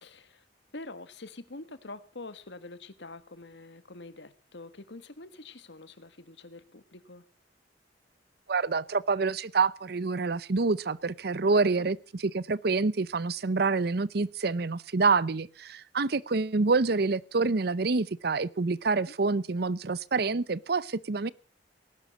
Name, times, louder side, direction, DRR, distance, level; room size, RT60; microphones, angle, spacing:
voice 1, 0.0-0.4 0.7-7.2 11.4-11.9 19.0-19.1, left 2 dB, 75° left, 13 dB, 1.5 m, -46 dB
voice 2, 8.5-12.0 12.3-21.3, right 4 dB, 60° right, 20 dB, 0.7 m, -27 dB
19.0 x 11.5 x 5.9 m, 0.38 s
head